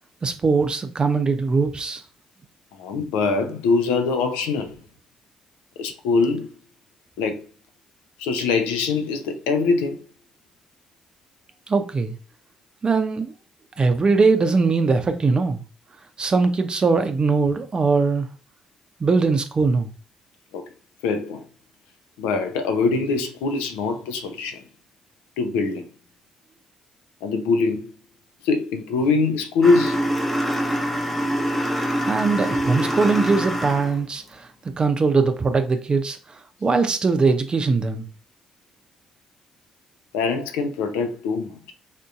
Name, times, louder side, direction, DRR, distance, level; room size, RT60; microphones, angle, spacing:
voice 1, 0.2-2.0 11.7-12.1 12.8-13.3 13.8-15.6 16.2-18.3 19.0-19.9 32.1-34.2 34.8-36.2 36.6-38.1, right 4 dB, 35° right, 0.6 m, -20 dB
voice 2, 2.8-4.8 5.8-6.5 7.2-7.4 8.2-10.0 20.5-20.6 21.0-21.4 22.2-24.6 25.4-25.9 27.2-27.9 28.4-30.0 40.1-41.7, left 4 dB, 75° left, 0.4 m, -23 dB
sound 1, 29.6-34.0, equal, 5° left, 0.7 m, -25 dB
3.6 x 2.6 x 2.4 m
hypercardioid pair, 45°, 2 cm